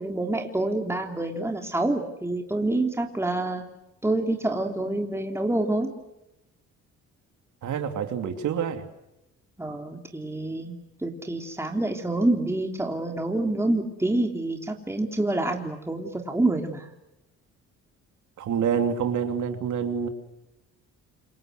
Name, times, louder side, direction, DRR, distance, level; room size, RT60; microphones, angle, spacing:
voice 1, 0.0-3.6 4.0-5.9 9.6-10.8 11.0-16.9, right 2 dB, 10° right, 3 dB, 3.3 m, -27 dB
voice 2, 7.6-8.8 18.4-20.1, right 7 dB, 75° right, 6 dB, 2.9 m, -27 dB
27.5 x 24.5 x 8.0 m, 0.90 s
cardioid pair, 90°, 30 cm